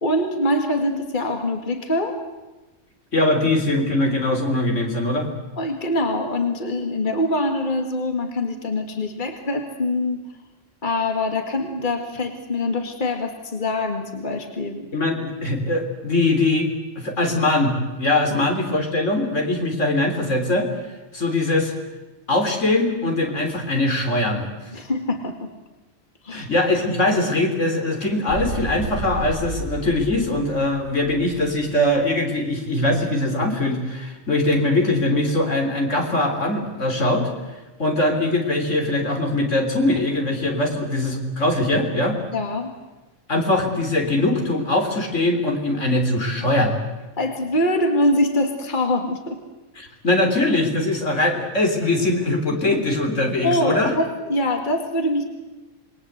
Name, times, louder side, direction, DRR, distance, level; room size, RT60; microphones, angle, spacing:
voice 1, 0.0-2.2 5.6-10.2 10.8-14.9 18.3-18.4 24.7-25.5 26.2-26.5 42.3-42.7 47.2-49.4 53.4-55.2, left 1 dB, 40° left, 4 dB, 2.2 m, -24 dB
voice 2, 3.1-5.3 14.9-16.7 17.0-20.7 21.1-21.7 22.3-24.5 26.3-37.3 37.8-42.2 43.3-46.8 49.8-53.9, left 2 dB, 75° left, 3 dB, 4.0 m, -21 dB
Motorcycle, 28.3-32.2, right 1 dB, 90° right, 4.7 m, -32 dB
27.5 x 21.0 x 8.1 m, 1.1 s
omnidirectional pair, 1.3 m